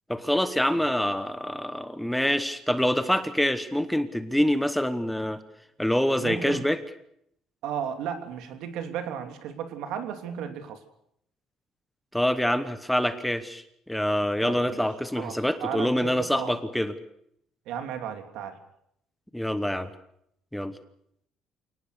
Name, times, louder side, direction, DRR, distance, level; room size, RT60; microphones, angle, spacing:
voice 1, 0.1-5.4 5.8-6.8 12.1-16.9 19.3-19.9 20.5-20.7, equal, ahead, 11 dB, 1.1 m, -26 dB
voice 2, 6.2-6.6 7.6-10.8 14.4-14.8 15.2-16.6 17.6-18.6, right 8 dB, 70° right, 7 dB, 3.1 m, -34 dB
28.0 x 19.0 x 6.8 m, 0.72 s
cardioid pair, 165°, 0 cm